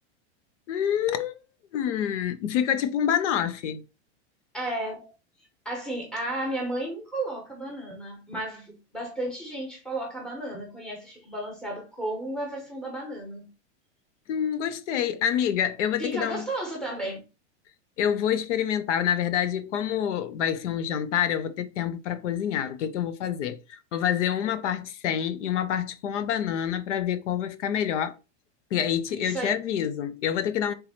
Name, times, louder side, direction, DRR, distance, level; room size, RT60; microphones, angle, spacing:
voice 1, 0.7-1.4 1.7-3.8 14.3-16.5 18.0-28.2 28.7-30.7, left 9 dB, 80° left, 0.7 m, -27 dB
voice 2, 4.5-5.1 5.6-13.5 16.0-17.2 29.1-29.5, right 1 dB, ahead, 0.9 m, -33 dB
3.7 x 2.9 x 4.2 m
supercardioid pair, 165°, 35 cm